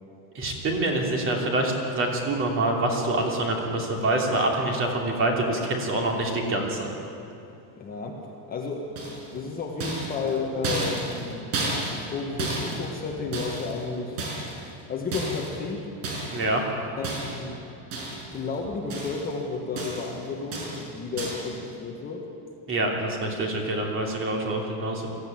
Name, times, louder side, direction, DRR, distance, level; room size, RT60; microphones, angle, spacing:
voice 1, 0.3-6.9 16.3-16.6 22.7-25.1, right 2 dB, 25° right, 1 dB, 2.9 m, -26 dB
voice 2, 7.8-8.2 8.5-11.5 11.9-14.2 14.9-15.9 17.0-17.6 18.1-22.3, left 4 dB, 20° left, 0 dB, 1.5 m, -32 dB
sound 1, 9.0-9.4 9.8-13.8 14.2-14.7 15.1-15.6 16.0-16.5 17.0-17.5 17.9-18.4 18.6-19.3 19.8-20.2 20.5-20.9 21.2-21.5, right 2 dB, 55° right, 5.6 m, -32 dB
22.0 x 15.0 x 9.2 m, 2.7 s
cardioid pair, 175°, 46 cm